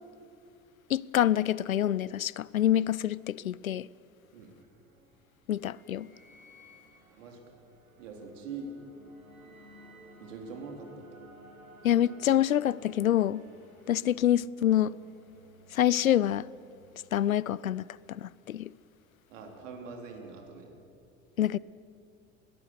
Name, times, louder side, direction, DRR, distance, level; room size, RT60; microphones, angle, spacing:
voice 1, 0.9-3.9 5.5-6.1 11.8-13.4 13.9-15.0 15.7-16.5 17.1-18.7 21.4-21.6, left 11 dB, 80° left, 0.5 m, -26 dB
sound 1, 4.1-17.6, equal, 90° right, 2.4 m, -55 dB
voice 2, 8.0-8.7 10.2-11.1 19.3-20.7, right 4 dB, 65° right, 3.9 m, -43 dB
21.0 x 18.5 x 8.1 m
figure-of-eight pair, 75°, 41 cm